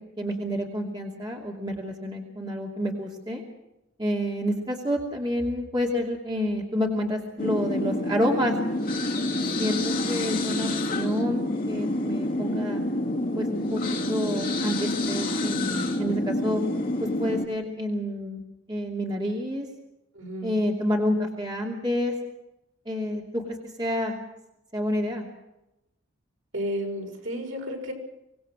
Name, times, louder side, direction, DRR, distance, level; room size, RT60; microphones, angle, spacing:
voice 1, 0.2-3.4 4.0-8.6 9.6-12.8 13.3-16.6 17.2-18.4 18.7-19.7 20.4-22.1 22.9-24.2 24.7-25.3, equal, 20° right, -1 dB, 2.8 m, -29 dB
sound 1, 7.4-17.5, left 1 dB, 40° left, 2.2 m, -28 dB
voice 2, 20.1-20.5 26.5-27.9, equal, 70° right, 1 dB, 6.2 m, -32 dB
25.0 x 19.5 x 6.3 m, 0.89 s
head